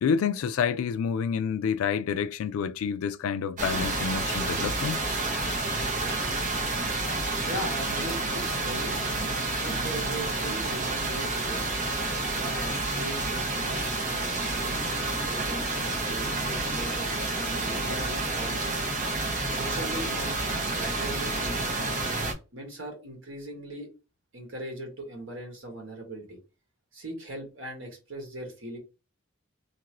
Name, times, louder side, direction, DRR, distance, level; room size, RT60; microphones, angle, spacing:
voice 1, 0.0-5.1, left 6 dB, 85° left, 0.3 m, -28 dB
sound 1, 3.6-22.3, right 2 dB, 40° right, 0.8 m, -29 dB
voice 2, 7.4-9.0 9.6-11.7 12.3-18.8 19.5-22.0 22.5-23.9 24.3-26.4 26.9-28.8, right 1 dB, 65° right, 1.4 m, -39 dB
2.9 x 2.5 x 2.9 m
head